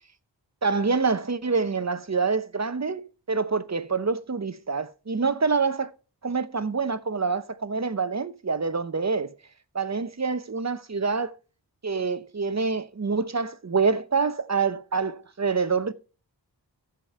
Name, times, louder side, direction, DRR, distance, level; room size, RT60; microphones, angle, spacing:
voice 1, 0.6-3.0 3.3-5.9 6.2-9.3 9.7-11.3 11.8-15.9, right 4 dB, 40° right, 0.7 m, -26 dB
14.5 x 5.1 x 4.3 m
wide cardioid pair, 50°, 43 cm